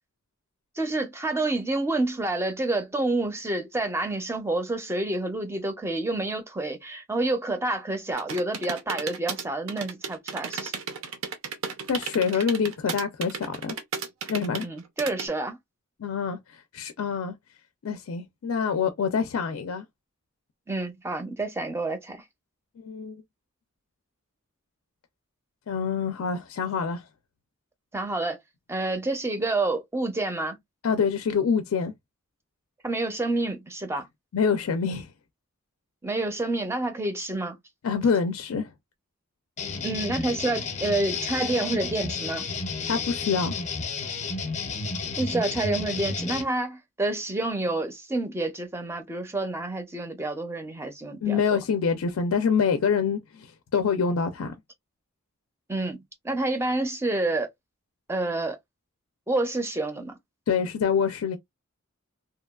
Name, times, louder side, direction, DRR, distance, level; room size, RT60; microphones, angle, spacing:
voice 1, 0.8-10.7 14.6-15.6 20.7-22.2 27.9-28.4 28.7-30.6 32.8-34.1 36.0-37.5 39.8-42.5 45.2-51.6 55.7-57.5 58.1-58.6 59.3-60.2, right 2 dB, 10° right, 0.5 m, -28 dB
sound 1, 8.1-15.3, right 6 dB, 65° right, 0.6 m, -34 dB
voice 2, 11.9-13.8 14.3-14.7 16.0-16.4 16.7-17.3 17.8-19.8 22.8-23.2 25.7-27.0 30.8-31.9 34.3-35.1 37.8-38.7 42.9-43.6 51.2-53.2 53.7-54.5 60.5-61.4, left 6 dB, 70° left, 0.4 m, -25 dB
sound 2, 39.6-46.4, left 4 dB, 35° left, 0.6 m, -32 dB
2.8 x 2.2 x 2.3 m
head